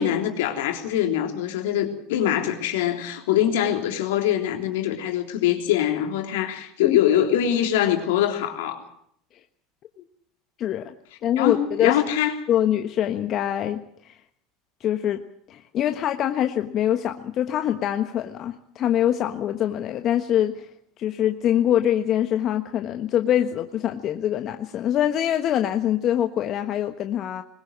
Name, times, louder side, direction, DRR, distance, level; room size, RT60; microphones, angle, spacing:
voice 1, 0.0-8.8 11.4-12.4, left 11 dB, 75° left, 3.4 m, -23 dB
voice 2, 10.6-10.9 11.2-12.0 12.5-14.2 14.8-15.2 15.5-20.7 21.0-27.4, left 11 dB, 50° left, 1.3 m, -24 dB
21.5 x 20.0 x 7.4 m
hypercardioid pair, 85°, 0 cm